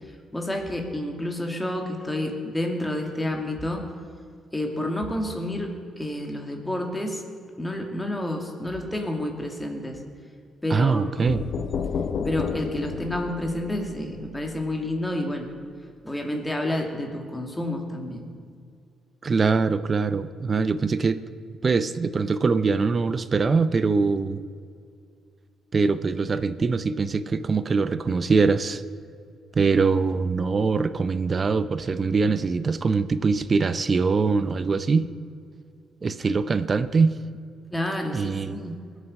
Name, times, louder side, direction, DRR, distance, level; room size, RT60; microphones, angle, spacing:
voice 1, 0.3-3.8 4.5-7.2 7.6-10.0 10.6-11.1 12.2-15.5 16.0-18.3 37.7-38.8, left 1 dB, 10° left, 2 dB, 2.4 m, -29 dB
voice 2, 10.7-11.4 19.2-21.2 21.6-24.4 25.7-28.8 29.5-35.1 36.0-37.2 38.1-38.8, right 4 dB, 35° right, 13 dB, 0.6 m, -23 dB
sound 1, 11.3-15.0, left 6 dB, 65° left, 0.8 m, -32 dB
21.5 x 8.2 x 5.5 m, 2.3 s
cardioid pair, 90°, 0 cm